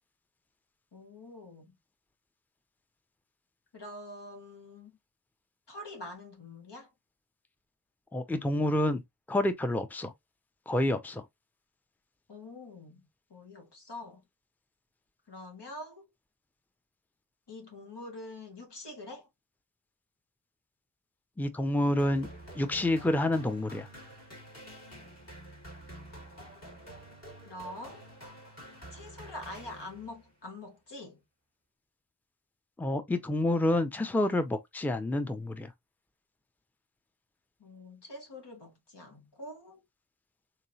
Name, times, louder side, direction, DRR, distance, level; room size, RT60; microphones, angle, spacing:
voice 1, 0.9-1.7 3.7-4.9 5.7-6.9 12.3-13.0 13.3-14.2 15.3-16.0 17.5-19.3 27.4-28.1 28.9-31.2 37.6-39.8, left 1 dB, 80° left, 1.4 m, -45 dB
voice 2, 8.1-9.0 9.3-10.1 10.7-11.2 21.4-22.3 22.6-23.9 32.8-35.7, left 1 dB, 5° left, 0.5 m, -28 dB
sound 1, 22.0-30.3, right 1 dB, 40° left, 1.8 m, -49 dB
3.7 x 2.9 x 2.7 m
wide cardioid pair, 45°, 40 cm